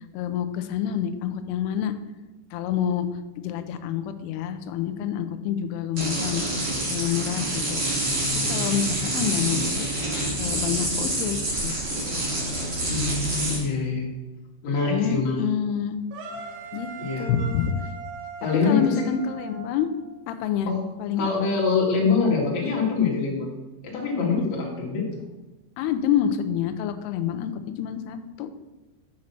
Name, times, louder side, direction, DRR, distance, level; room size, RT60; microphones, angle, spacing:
voice 1, 0.1-1.9 2.5-3.1 3.4-6.4 6.9-8.1 8.5-9.9 10.4-12.4 14.9-16.0 16.7-16.9 17.2-17.8 18.6-19.9 20.3-20.7 21.0-21.3 25.8-27.5 27.8-28.5, left 9 dB, 85° left, 8 dB, 2.4 m, -27 dB
sound 1, 6.0-13.6, right 1 dB, 30° right, 2.9 m, -27 dB
voice 2, 12.9-14.1 14.6-15.4 16.9-17.3 18.4-19.1 20.7-20.8 21.2-23.5 23.8-25.0, left 4 dB, 50° left, -3 dB, 2.6 m, -24 dB
sound 2, 16.1-20.2, right 5 dB, 80° right, 3.4 m, -39 dB
7.3 x 6.4 x 5.8 m, 1.1 s
omnidirectional pair, 5.3 m